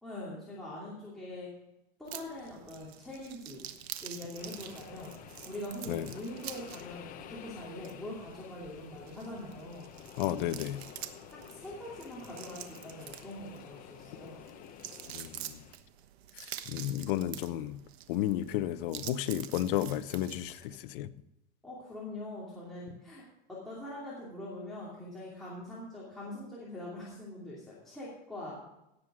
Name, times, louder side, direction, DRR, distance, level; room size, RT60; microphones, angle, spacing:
voice 1, 0.0-1.5 2.0-3.7 4.0-5.1 5.5-9.9 11.5-14.4 21.6-23.2 23.5-28.6, left 1 dB, ahead, -9 dB, 2.7 m, -43 dB
sound 1, 2.1-20.8, right 11 dB, 85° right, 1.2 m, -47 dB
sound 2, 4.4-15.8, left 9 dB, 25° left, 0.8 m, -51 dB
voice 2, 10.2-10.8 15.1-15.6 16.4-17.8 18.1-21.1, left 12 dB, 55° left, 14 dB, 0.7 m, -33 dB
17.5 x 7.5 x 4.9 m, 0.88 s
supercardioid pair, 165°, 31 cm